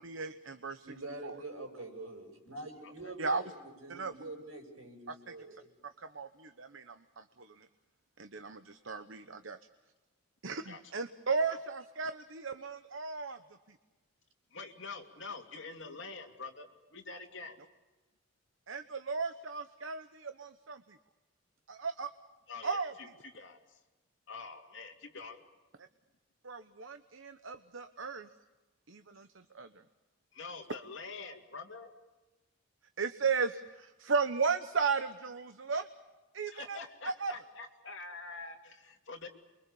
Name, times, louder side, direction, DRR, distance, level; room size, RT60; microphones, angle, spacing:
voice 1, 0.0-0.8 1.2-1.3 3.2-3.4 3.9-4.1 6.0-7.7 8.2-9.6 10.4-13.4 18.7-21.0 21.7-22.1 22.6-22.9 26.4-28.3 28.9-29.3 29.5-29.7 33.0-35.9 36.3-36.8 37.2-37.3, right 5 dB, 65° right, 9 dB, 1.0 m, -35 dB
voice 2, 0.8-5.7 19.8-19.9 29.1-29.2, right 2 dB, 85° right, 3 dB, 7.2 m, -46 dB
voice 3, 14.5-17.6 22.5-23.8 24.3-25.4 30.3-31.9 36.5-39.3, left 4 dB, 60° left, 3 dB, 2.6 m, -46 dB
29.0 x 23.5 x 7.0 m, 1.2 s
head